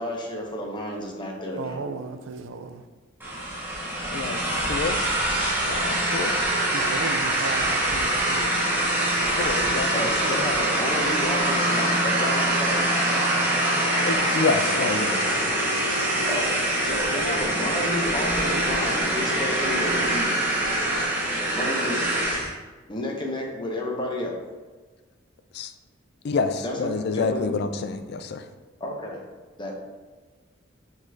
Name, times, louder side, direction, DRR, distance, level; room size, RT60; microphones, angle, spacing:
voice 1, 0.0-1.8 9.9-12.9 16.3-20.4 21.5-22.0 22.9-24.4 26.6-27.6 28.8-29.2 29.6-29.7, left 1 dB, 25° left, 0 dB, 0.7 m, -31 dB
voice 2, 1.6-2.8 6.7-8.8, right 4 dB, 70° right, 8 dB, 0.4 m, -35 dB
sound 1, 3.2-22.5, right 1 dB, 10° right, 0.9 m, -24 dB
voice 3, 4.7-5.0 5.7-6.3 9.4-9.9 10.3-10.4 14.0-15.5 25.5-25.7 26.2-28.4, left 4 dB, 55° left, 9 dB, 0.3 m, -28 dB
4.9 x 4.0 x 2.7 m, 1.3 s
head